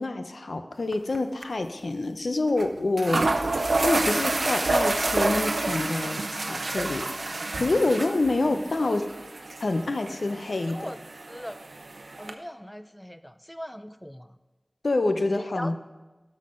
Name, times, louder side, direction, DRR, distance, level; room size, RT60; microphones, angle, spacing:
voice 1, 0.0-3.3 3.8-7.1 7.6-9.0 9.6-10.9 14.8-15.8, left 2 dB, 85° left, 8 dB, 0.6 m, -27 dB
sound 1, 0.9-1.2 1.4-1.5 2.6-2.7 3.0-12.3, right 2 dB, 80° right, 0.7 m, -29 dB
voice 2, 10.7-11.0 11.3-11.6 12.2-14.3 15.3-15.8, equal, 10° left, 12 dB, 0.4 m, -40 dB
12.5 x 5.8 x 5.2 m, 1.2 s
wide cardioid pair, 60°, 0 cm